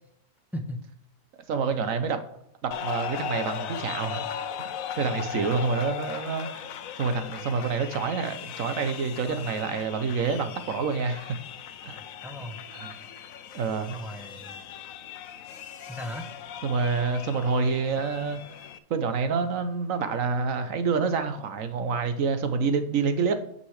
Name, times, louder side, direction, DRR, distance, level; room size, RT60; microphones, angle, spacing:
voice 1, 0.5-0.8 5.3-5.7 12.2-12.6 13.9-14.6 15.8-16.3, equal, ahead, 4 dB, 1.0 m, -37 dB
voice 2, 1.5-2.2 2.6-4.3 4.6-6.7 7.0-11.4 11.8-12.0 12.7-12.9 13.5-14.0 16.6-23.3, right 5 dB, 70° right, 9 dB, 1.3 m, -27 dB
sound 1, 2.7-18.8, left 9 dB, 75° left, 1.0 m, -38 dB
9.5 x 5.6 x 4.9 m, 0.74 s
omnidirectional pair, 1.5 m